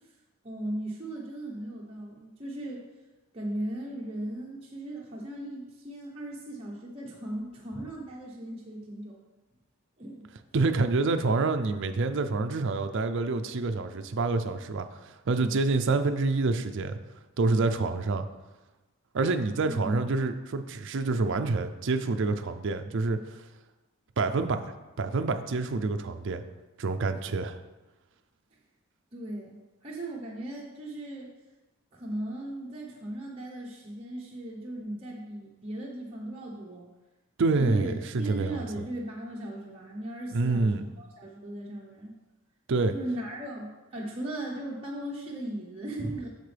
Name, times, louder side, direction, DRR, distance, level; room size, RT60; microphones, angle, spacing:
voice 1, 0.4-2.8 3.3-9.2 10.0-10.3 19.6-20.1 29.1-31.3 31.9-36.9 37.6-42.1 42.9-46.3, right 1 dB, 30° right, -5 dB, 0.9 m, -37 dB
voice 2, 10.5-17.0 17.4-18.3 19.1-23.2 24.2-26.4 26.8-27.6 37.4-38.9 40.3-40.8 42.7-42.9, right 3 dB, 60° right, 8 dB, 0.5 m, -27 dB
8.2 x 6.6 x 3.4 m, 1.1 s
head